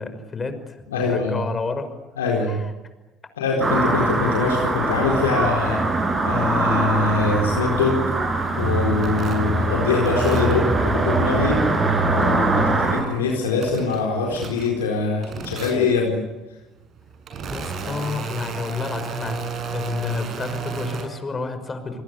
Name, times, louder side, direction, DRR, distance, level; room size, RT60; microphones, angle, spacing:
voice 1, 0.0-2.0 2.2-2.7 17.5-22.0, left 4 dB, 30° left, 10 dB, 5.6 m, -30 dB
voice 2, 0.9-1.4 2.2-2.6 3.4-8.0 8.6-11.6 12.1-16.2, left 4 dB, 90° left, -1 dB, 4.4 m, -23 dB
sound 1, 3.6-13.0, right 2 dB, 30° right, 7.4 m, -22 dB
sound 2, 8.4-12.5 12.9-14.9 15.2-16.1 16.8-21.0, right 5 dB, 55° right, 7.3 m, -34 dB
27.5 x 21.0 x 9.6 m, 1.1 s
hypercardioid pair, 60°, 0 cm